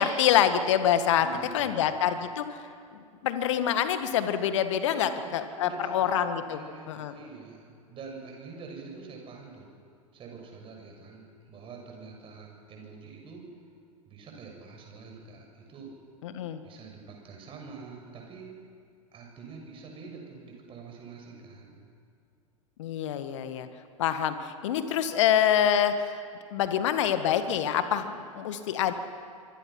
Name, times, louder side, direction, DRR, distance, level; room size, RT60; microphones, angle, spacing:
voice 1, 0.0-1.3 1.5-2.6 2.9-6.6 6.9-7.1 16.2-16.6 22.8-23.7 24.0-26.2 26.5-28.9, left 9 dB, 55° left, 10 dB, 1.8 m, -26 dB
voice 2, 1.2-2.2 4.8-6.2 6.5-9.7 10.1-13.4 14.0-15.9 16.6-18.5 19.1-21.8, right 4 dB, 30° right, 1 dB, 6.6 m, -45 dB
25.5 x 24.5 x 6.0 m, 2.2 s
figure-of-eight pair, 85°, 18 cm